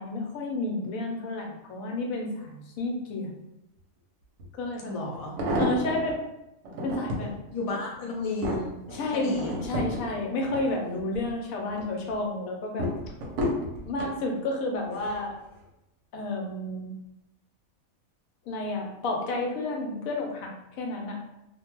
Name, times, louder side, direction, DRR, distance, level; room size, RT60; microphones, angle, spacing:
voice 1, 0.0-3.3 4.6-5.0 5.6-6.2 6.8-7.3 8.9-12.9 13.8-15.3 16.1-16.9 18.5-20.5 20.8-21.2, left 2 dB, 80° left, 1 dB, 1.0 m, -31 dB
sound 1, 4.4-4.5 5.1-6.1 6.6-7.3 7.9-11.3 11.7-12.1 12.8-14.2 14.9-15.3 15.6-15.7, equal, 65° right, 0.9 m, -31 dB
voice 2, 4.9-5.4 7.5-8.8 9.1-9.6, left 2 dB, 65° left, -2 dB, 0.3 m, -33 dB
2.4 x 2.2 x 2.9 m, 0.89 s
omnidirectional pair, 1.5 m